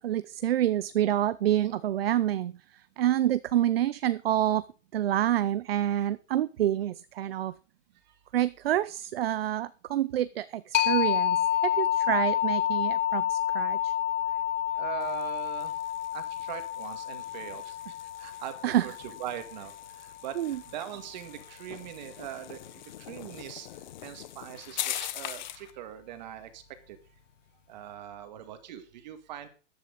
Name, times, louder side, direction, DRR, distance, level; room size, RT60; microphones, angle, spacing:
voice 1, 0.0-4.7 4.9-7.5 8.3-13.9 18.6-18.9 20.4-20.6, right 12 dB, 55° right, 16 dB, 0.6 m, -28 dB
sound 1, 10.7-20.1, left 12 dB, 85° left, 0.8 m, -29 dB
voice 2, 14.8-15.8 16.1-19.7 20.0-23.7 24.0-26.6 26.9-27.0 27.7-29.5, right 11 dB, 35° right, 9 dB, 2.0 m, -41 dB
sound 2, 15.0-25.7, left 12 dB, 40° left, 1.1 m, -43 dB
14.5 x 11.0 x 4.0 m, 0.36 s
hypercardioid pair, 175°, 36 cm